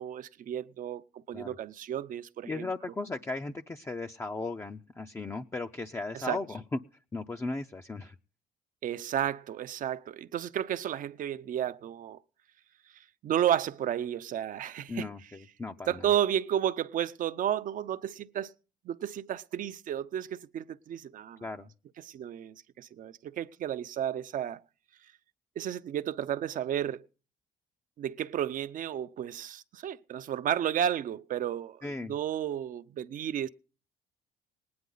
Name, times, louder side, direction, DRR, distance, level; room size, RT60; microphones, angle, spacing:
voice 1, 0.0-2.6 6.1-6.4 8.8-12.2 13.2-15.1 15.9-18.5 18.9-21.4 22.0-24.6 25.6-27.0 28.0-33.5, right 10 dB, 50° right, 0.6 m, -32 dB
voice 2, 2.5-6.8 7.1-8.2 14.9-16.1 21.4-21.7 31.8-32.1, left 3 dB, 15° left, 0.5 m, -36 dB
19.0 x 9.6 x 3.9 m
cardioid pair, 110°, 17 cm